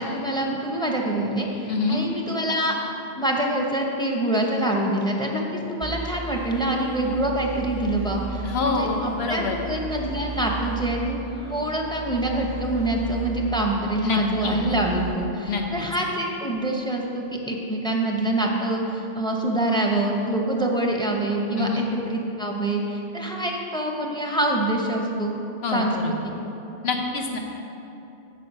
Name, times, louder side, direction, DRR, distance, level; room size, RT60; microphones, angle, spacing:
voice 1, 0.0-2.8 3.2-11.2 11.5-25.3 25.7-26.3, right 1 dB, 5° left, 0 dB, 0.7 m, -25 dB
voice 2, 1.7-2.0 8.4-9.6 14.0-14.6 15.5-15.8 21.6-21.8 25.6-26.1 26.8-27.4, left 4 dB, 70° left, 2 dB, 1.1 m, -26 dB
sound 1, 5.8-16.1, right 4 dB, 30° left, 1.4 m, -35 dB
8.0 x 6.4 x 5.4 m, 3.0 s
omnidirectional pair, 1.1 m